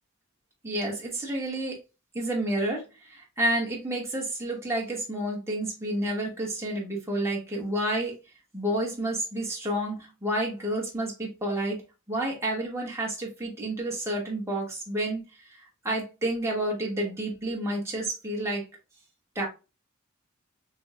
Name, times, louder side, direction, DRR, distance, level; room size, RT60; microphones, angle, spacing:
voice 1, 0.6-1.8 2.1-8.2 8.5-11.8 12.1-15.2 15.5-15.6 15.8-18.6 19.3-19.5, right 1 dB, 15° right, 1.3 m, -30 dB
6.1 x 2.3 x 2.4 m
head